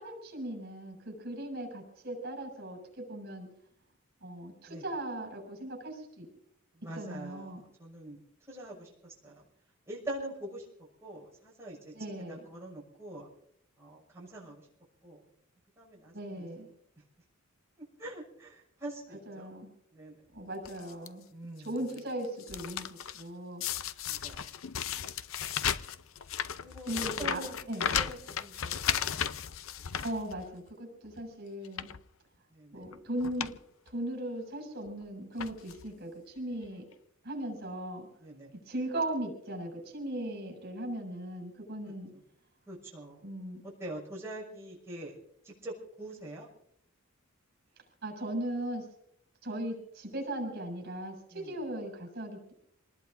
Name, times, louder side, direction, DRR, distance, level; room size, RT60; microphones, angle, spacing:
voice 1, 0.0-3.5 4.2-6.3 6.9-7.6 11.9-12.4 16.1-16.7 19.3-19.7 20.3-21.2 21.6-23.6 26.9-27.4 27.7-27.9 30.0-31.9 32.7-33.6 33.9-36.8 37.2-38.1 38.5-42.1 43.2-43.6 48.0-48.9 49.4-52.5, right 1 dB, 50° right, 2 dB, 6.5 m, -38 dB
voice 2, 6.7-8.2 8.5-9.4 9.9-10.6 11.0-11.9 12.3-13.3 13.8-14.7 15.0-15.2 15.8-16.7 17.8-19.5 19.9-20.2 21.3-21.9 24.1-24.6 25.0-25.1 25.7-25.8 26.6-29.5 29.8-29.9 32.5-32.8 38.2-38.5 42.7-43.2 43.6-45.2 45.4-46.5 51.3-51.6, right 1 dB, 15° right, -5 dB, 6.1 m, -44 dB
sound 1, 20.6-21.1 21.6-22.0 22.2-23.2 23.6-30.7 31.1-31.2 31.6-32.0 32.8-32.9 33.2-33.6 33.9-34.0 34.9-35.0 35.4-35.9 36.6-36.7 36.9-37.0, left 9 dB, 65° left, 0.6 m, -35 dB
28.0 x 19.5 x 2.7 m, 0.71 s
head